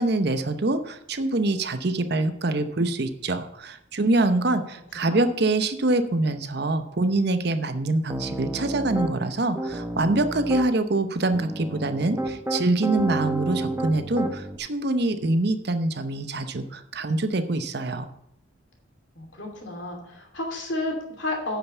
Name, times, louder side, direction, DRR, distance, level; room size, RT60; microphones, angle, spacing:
voice 1, 0.0-18.1, right 2 dB, 55° right, 9 dB, 0.8 m, -25 dB
Piano, 8.1-9.1 9.6-10.7 11.3-14.6, right 1 dB, 10° right, 0.9 m, -30 dB
voice 2, 19.2-21.6, left 2 dB, 65° left, 1 dB, 2.6 m, -32 dB
10.0 x 5.6 x 7.0 m, 0.74 s
head